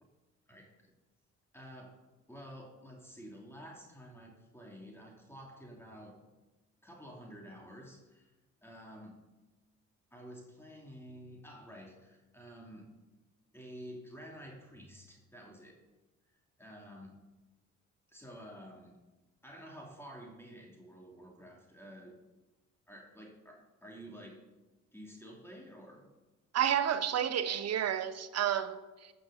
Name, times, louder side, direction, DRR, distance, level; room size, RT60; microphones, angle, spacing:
voice 1, 0.5-0.9 1.5-2.0 2.3-6.2 6.8-8.4 8.6-9.2 10.1-13.0 13.5-15.8 16.3-17.2 18.1-19.0 19.4-22.2 22.9-24.5 24.9-26.1, equal, 10° left, 2.9 m, -50 dB
voice 2, 26.5-29.1, right 9 dB, 55° right, 1.1 m, -31 dB
14.0 x 6.6 x 7.0 m
cardioid pair, 90°, 30 cm